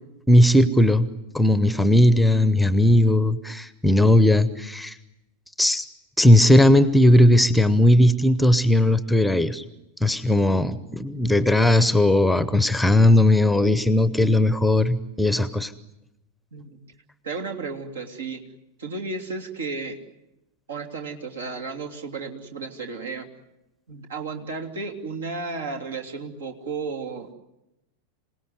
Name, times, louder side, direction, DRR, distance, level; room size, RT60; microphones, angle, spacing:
voice 1, 0.3-1.1 1.3-4.9 5.6-5.8 6.2-9.6 10.0-15.7, left 1 dB, 5° left, 16 dB, 0.9 m, -18 dB
voice 2, 17.2-18.4 18.8-20.0 20.7-23.3 23.9-27.3, right 4 dB, 65° right, 4 dB, 3.0 m, -33 dB
27.0 x 18.5 x 9.7 m, 0.91 s
figure-of-eight pair, 90°, 0 cm